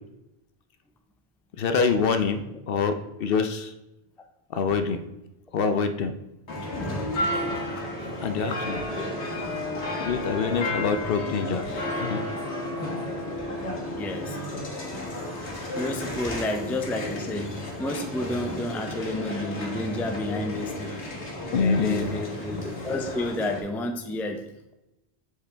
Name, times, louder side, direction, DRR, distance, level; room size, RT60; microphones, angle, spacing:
voice 1, 1.6-3.7 4.5-5.0 5.5-6.1 7.5-8.8 10.0-12.2 21.5-22.2, left 5 dB, 65° left, 8 dB, 0.8 m, -26 dB
sound 1, 6.5-23.6, left 1 dB, 85° left, 1.9 m, -32 dB
voice 2, 14.0-14.4 15.8-21.0 21.5-22.5 22.8-24.7, left 1 dB, 5° left, 4 dB, 0.4 m, -31 dB
7.3 x 5.0 x 3.4 m, 0.92 s
omnidirectional pair, 1.1 m